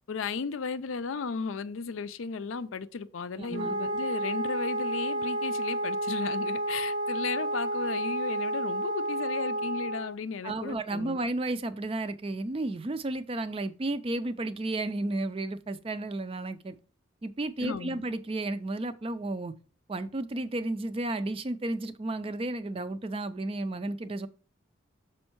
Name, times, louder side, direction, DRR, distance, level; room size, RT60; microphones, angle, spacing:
voice 1, 0.1-11.2 17.6-18.0, left 5 dB, 80° left, 0.5 m, -35 dB
voice 2, 3.4-3.7 10.4-16.8 17.2-19.5 19.9-24.3, right 2 dB, 25° right, 0.4 m, -33 dB
Wind instrument woodwind instrument, 3.5-10.1, right 1 dB, 65° right, 0.7 m, -31 dB
6.3 x 4.4 x 4.5 m
head